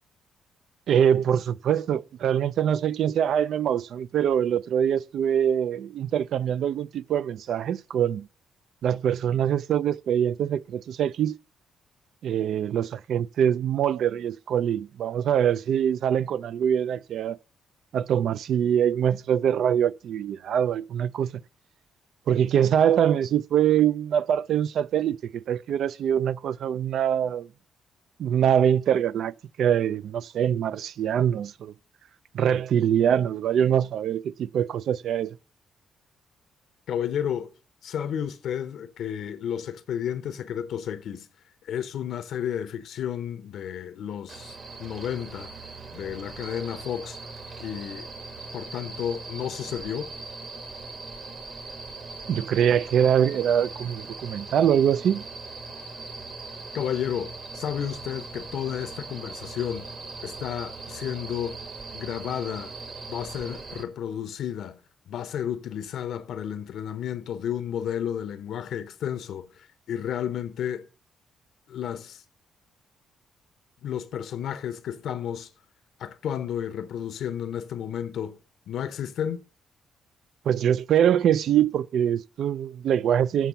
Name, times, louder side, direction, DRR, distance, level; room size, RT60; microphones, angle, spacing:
voice 1, 0.9-8.3 8.8-11.4 12.2-17.4 17.9-21.4 22.3-27.5 28.2-31.7 32.3-35.4 52.3-55.2 80.5-83.5, right 9 dB, 70° right, 0.3 m, -24 dB
voice 2, 36.9-37.5 37.8-41.3 41.6-45.5 45.9-47.2 47.6-48.1 48.5-50.1 56.7-59.9 60.2-61.6 61.9-62.7 63.1-64.8 65.1-70.9 71.7-72.2 73.8-75.5 76.0-78.4 78.7-79.4, left 9 dB, 70° left, 0.7 m, -32 dB
sound 1, 44.3-63.8, right 3 dB, 45° right, 1.7 m, -40 dB
7.4 x 5.8 x 6.8 m
cardioid pair, 90°, 0 cm